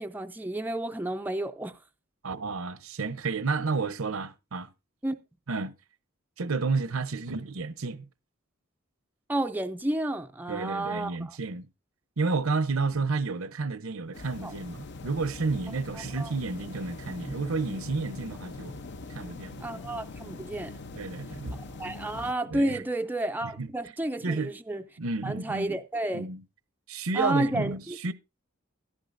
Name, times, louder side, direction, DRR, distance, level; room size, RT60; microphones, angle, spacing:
voice 1, 0.0-1.8 5.0-5.2 9.3-11.4 14.4-14.5 15.9-16.3 19.6-20.8 21.8-24.8 25.2-26.3 27.1-28.0, right 1 dB, 10° right, 0.5 m, -31 dB
voice 2, 2.2-4.7 5.5-5.7 6.4-8.0 10.5-11.7 12.2-18.8 19.1-19.8 21.0-21.6 22.5-22.8 23.4-23.7 24.2-24.5 25.0-25.8 26.1-26.4 26.9-28.1, right 4 dB, 75° right, 0.8 m, -31 dB
sound 1, 14.1-22.3, left 3 dB, 55° left, 0.7 m, -42 dB
13.5 x 11.5 x 2.6 m
head